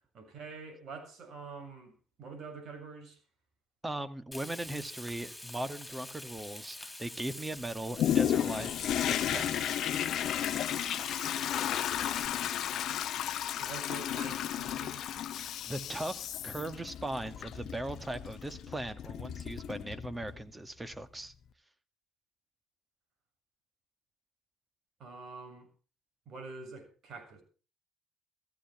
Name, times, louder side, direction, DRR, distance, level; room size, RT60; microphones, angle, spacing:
voice 1, 0.1-3.2 13.6-15.0 25.0-25.7 26.3-27.4, right 4 dB, 65° right, 7.0 m, -46 dB
voice 2, 3.8-9.6 15.4-21.3, right 1 dB, 20° right, 2.0 m, -39 dB
Frying (food), 4.3-12.3, left 1 dB, 5° left, 4.3 m, -46 dB
Toilet flush, 8.0-20.4 20.9-21.0, left 10 dB, 65° left, 1.0 m, -33 dB
15.0 x 14.5 x 4.5 m
hypercardioid pair, 60°, 0 cm